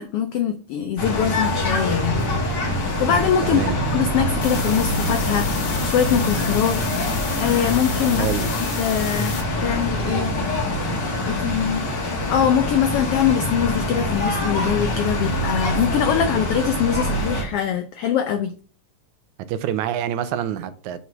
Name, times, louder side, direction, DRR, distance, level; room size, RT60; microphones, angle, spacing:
voice 1, 0.0-2.2 2.8-3.6 3.9-6.8 7.4-8.3 8.8-10.3 11.2-11.8 12.3-18.5, left 9 dB, 85° left, 1.3 m, -23 dB
sound 1, 1.0-17.4, left 1 dB, 45° left, 2.0 m, -24 dB
voice 2, 3.4-3.8 8.1-8.5 19.5-21.0, right 10 dB, 85° right, 2.1 m, -26 dB
sound 2, 4.4-9.4, left 5 dB, 65° left, 3.0 m, -32 dB
6.1 x 4.2 x 5.9 m
omnidirectional pair, 3.4 m